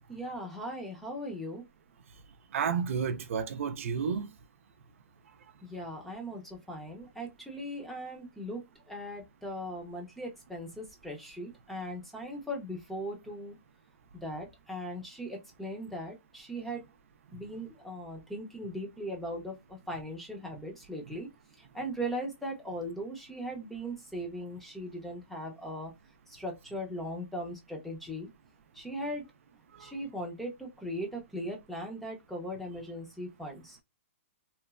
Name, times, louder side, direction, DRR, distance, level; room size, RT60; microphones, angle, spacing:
voice 1, 0.1-1.6 5.6-8.6 8.9-13.5 14.1-16.8 17.3-21.3 21.6-25.9 26.3-28.3 28.7-29.2 29.8-33.8, equal, ahead, 0.6 m, -39 dB
voice 2, 2.5-4.3 17.3-17.4 29.7-29.9, right 6 dB, 70° right, 0.4 m, -31 dB
3.0 x 2.0 x 2.3 m
hypercardioid pair, 155°, 7 cm